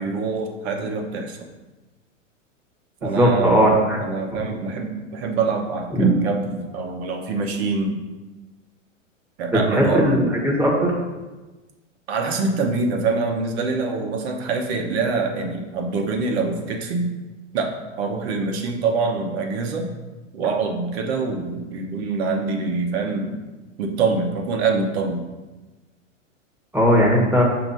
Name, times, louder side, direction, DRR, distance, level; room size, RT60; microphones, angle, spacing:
voice 1, 0.0-1.4 3.0-8.0 9.4-10.3 12.1-17.1 17.5-19.9 20.3-23.4 23.8-25.3, right 4 dB, 55° right, 3 dB, 1.1 m, -25 dB
voice 2, 3.0-4.0 5.9-6.1 9.7-10.9 26.7-27.4, equal, 5° right, -3 dB, 1.2 m, -18 dB
6.0 x 2.9 x 5.4 m, 1.2 s
hypercardioid pair, 120°, 39 cm